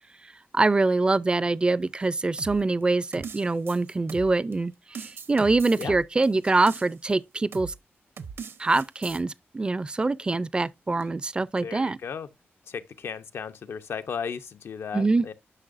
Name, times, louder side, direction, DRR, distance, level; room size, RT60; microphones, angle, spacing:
voice 1, 0.5-7.7 8.6-12.0 14.9-15.3, right 3 dB, 25° right, 0.4 m, -24 dB
sound 1, 2.4-4.5 4.9-7.1 7.5-7.8 8.2-9.2, right 6 dB, 75° right, 0.9 m, -40 dB
voice 2, 11.6-12.3 12.6-15.3, left 6 dB, 75° left, 0.7 m, -35 dB
9.8 x 6.0 x 2.5 m
wide cardioid pair, 120°, 4 cm